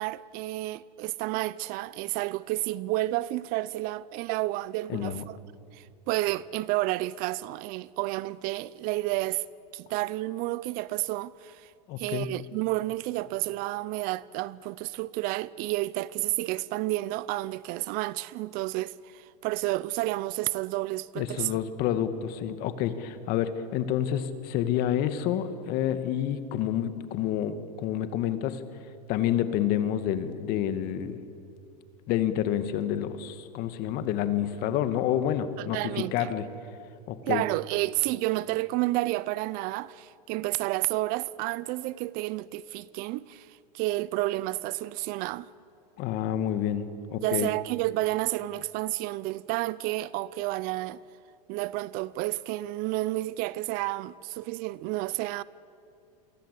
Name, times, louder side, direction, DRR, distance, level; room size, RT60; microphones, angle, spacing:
voice 1, 0.0-5.4 5.7-9.4 9.7-11.7 12.0-21.5 35.6-36.3 37.2-45.5 47.2-51.0 51.5-55.4, right 18 dB, 45° right, 0.6 m, -30 dB
voice 2, 4.9-5.2 11.9-12.3 21.2-28.6 29.1-31.2 32.1-36.4 37.1-37.4 46.0-46.9 47.1-47.5, left 10 dB, 45° left, 2.0 m, -28 dB
28.0 x 23.5 x 8.4 m
hypercardioid pair, 125°, 21 cm